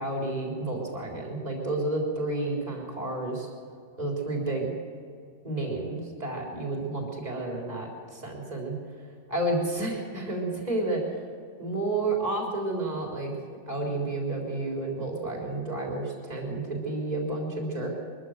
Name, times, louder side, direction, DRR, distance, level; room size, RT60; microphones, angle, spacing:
voice 1, 0.0-3.5 4.0-4.7 5.4-8.8 9.3-11.2 11.6-13.4 13.7-17.9, right 2 dB, 25° right, -2 dB, 4.0 m, -31 dB
23.5 x 14.5 x 7.9 m, 2.3 s
omnidirectional pair, 1.8 m